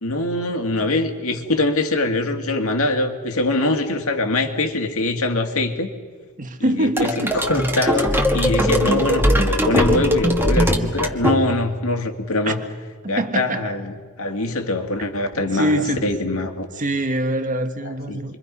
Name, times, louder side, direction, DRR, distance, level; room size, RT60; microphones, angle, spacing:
voice 1, 0.0-5.9 6.6-12.6 13.1-16.8 17.8-18.4, left 2 dB, 70° left, 2.4 m, -23 dB
voice 2, 6.4-7.4 12.5-12.6 13.0-13.7 15.5-16.0 16.8-18.4, right 1 dB, 35° right, 1.5 m, -23 dB
sound 1, 7.0-11.8, equal, 10° right, 1.7 m, -20 dB
29.0 x 24.0 x 5.5 m
head